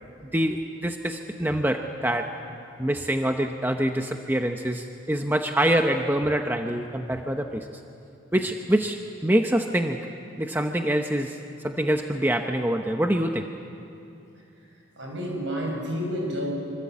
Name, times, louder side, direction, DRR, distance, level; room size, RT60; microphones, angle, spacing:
voice 1, 0.3-2.3 2.8-7.8 8.3-10.0 10.4-11.4 11.6-13.5, right 1 dB, 10° right, 4 dB, 0.8 m, -25 dB
voice 2, 15.0-16.5, equal, 65° right, 0 dB, 7.4 m, -30 dB
26.5 x 25.0 x 8.4 m, 2.7 s
head